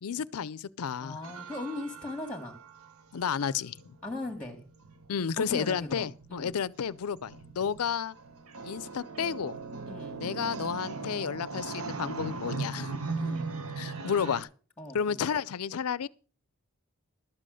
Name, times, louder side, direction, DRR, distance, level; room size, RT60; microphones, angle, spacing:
voice 1, 0.0-1.2 3.1-4.0 5.1-8.2 8.6-9.6 10.2-12.9 13.8-14.5 14.9-16.1, left 7 dB, 80° left, 0.5 m, -32 dB
voice 2, 1.0-2.6 4.0-4.6 5.4-6.5 9.9-10.3 13.2-13.5 14.8-15.2, left 2 dB, 5° left, 1.8 m, -39 dB
sound 1, 1.2-14.4, right 4 dB, 70° right, 1.2 m, -39 dB
12.0 x 7.6 x 6.4 m
head